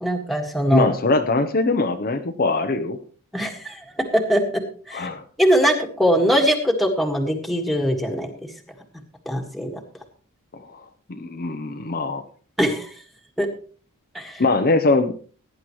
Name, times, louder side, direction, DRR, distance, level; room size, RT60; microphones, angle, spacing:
voice 1, 0.0-0.9 3.3-3.8 4.1-4.6 4.9-5.1 5.4-8.3 9.3-9.8 12.6-12.9 13.4-13.5 14.1-14.4, equal, ahead, 2 dB, 1.7 m, -21 dB
voice 2, 0.7-3.0 4.9-5.2 10.5-12.2 14.4-15.1, left 3 dB, 40° left, 6 dB, 0.7 m, -22 dB
17.5 x 10.0 x 3.1 m, 0.41 s
head